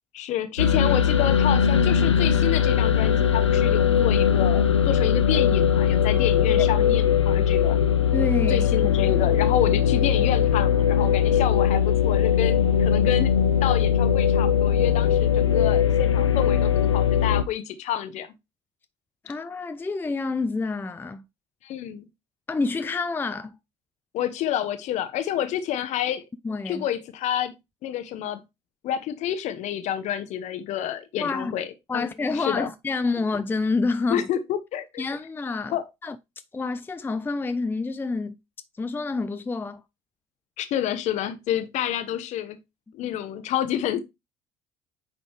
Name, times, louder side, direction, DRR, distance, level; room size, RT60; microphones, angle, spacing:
voice 1, 0.1-7.8 8.5-13.3 13.6-18.3 21.6-22.1 24.1-26.2 26.6-27.5 27.8-28.4 28.8-31.7 31.9-32.7 34.1-35.0 35.7-35.9 40.6-42.6 42.9-44.0, left 10 dB, 55° left, 1.0 m, -29 dB
sound 1, 0.6-17.4, left 8 dB, 90° left, 0.4 m, -20 dB
voice 2, 8.1-8.7 19.2-21.2 22.5-23.6 26.4-26.9 31.2-31.5 31.9-34.3 35.0-35.8 36.0-36.2 36.5-38.4 38.8-39.8 43.0-43.1, left 3 dB, 15° left, 0.5 m, -28 dB
8.9 x 3.8 x 3.3 m
figure-of-eight pair, 55°, 14 cm